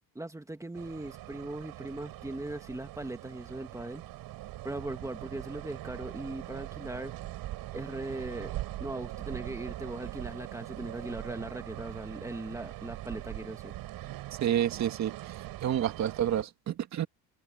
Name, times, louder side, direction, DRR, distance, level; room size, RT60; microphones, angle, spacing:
voice 1, 0.2-4.0 4.6-7.1 7.7-8.5 8.8-13.7, right 2 dB, 10° right, 2.0 m, -39 dB
sound 1, 0.7-16.4, right 15 dB, 65° right, 7.7 m, -42 dB
voice 2, 14.4-15.3 15.6-17.1, right 10 dB, 45° right, 2.0 m, -29 dB
cardioid pair, 130°, 37 cm